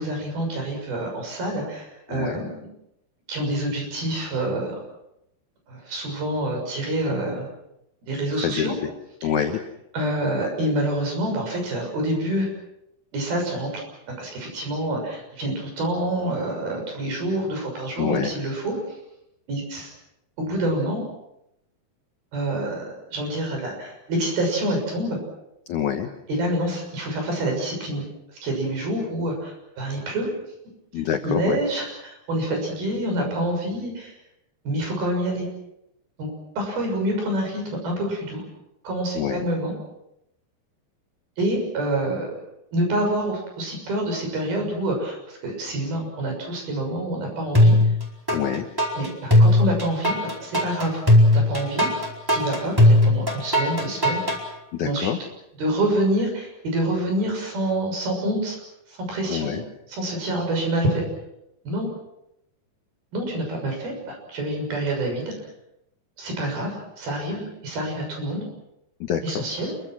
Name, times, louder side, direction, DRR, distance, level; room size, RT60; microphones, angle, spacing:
voice 1, 0.0-2.7 3.3-4.8 5.7-7.5 8.0-8.7 9.9-12.5 13.1-18.7 19.5-19.9 20.4-21.0 22.3-25.2 26.3-28.0 28.4-30.3 31.2-34.2 34.6-35.5 36.2-36.3 36.6-38.4 38.8-39.7 41.4-42.3 42.7-47.8 49.0-51.0 51.3-51.9 52.3-54.2 54.8-55.1 55.6-58.6 58.9-59.5 59.9-61.0 61.6-61.9 63.1-65.2 66.2-68.4 69.2-69.7, right 1 dB, 50° right, 2 dB, 8.2 m, -27 dB
voice 2, 2.1-2.4 7.1-7.2 8.3-8.9 9.2-9.6 18.0-18.3 25.7-26.1 30.9-31.6 39.1-39.5 48.3-48.7 54.7-55.2 59.3-59.6 69.0-69.4, left 8 dB, 80° left, 6 dB, 1.7 m, -26 dB
sound 1, 47.5-48.4 48.8-54.4, left 1 dB, 5° right, 3.9 m, -17 dB
28.0 x 23.5 x 6.2 m, 0.83 s
omnidirectional pair, 5.4 m